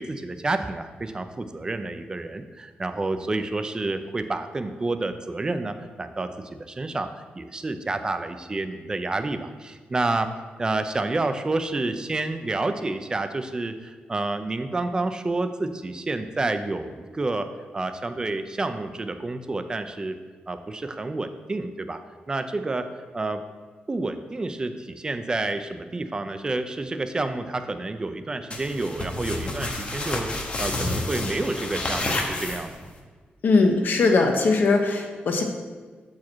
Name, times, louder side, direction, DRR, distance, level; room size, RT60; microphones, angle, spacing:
voice 1, 0.0-10.3 10.6-17.5 17.7-20.1 20.5-22.0 22.3-23.4 23.9-32.7, right 2 dB, 20° right, 9 dB, 0.4 m, -29 dB
sound 1, 28.5-33.0, left 2 dB, 35° left, 0.9 m, -30 dB
voice 2, 33.4-35.4, left 3 dB, 60° left, 3 dB, 0.9 m, -20 dB
7.2 x 4.7 x 4.5 m, 1.4 s
wide cardioid pair, 130°, 4 cm